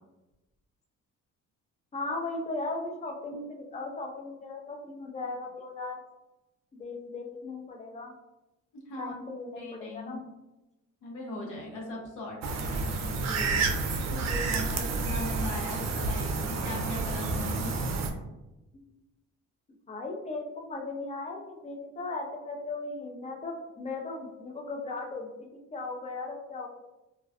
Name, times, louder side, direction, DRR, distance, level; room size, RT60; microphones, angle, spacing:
voice 1, 1.9-6.0 6.7-8.1 9.0-10.2 18.7-18.8 19.9-26.7, left 3 dB, 25° left, 1 dB, 0.5 m, -37 dB
voice 2, 8.7-9.1 9.6-10.2 11.0-12.4 12.7-17.7, left 2 dB, 90° left, -3 dB, 0.9 m, -39 dB
sound 1, 12.4-18.1, right 3 dB, 60° right, 0.4 m, -30 dB
2.3 x 2.3 x 2.3 m, 0.98 s
cardioid pair, 90°, 30 cm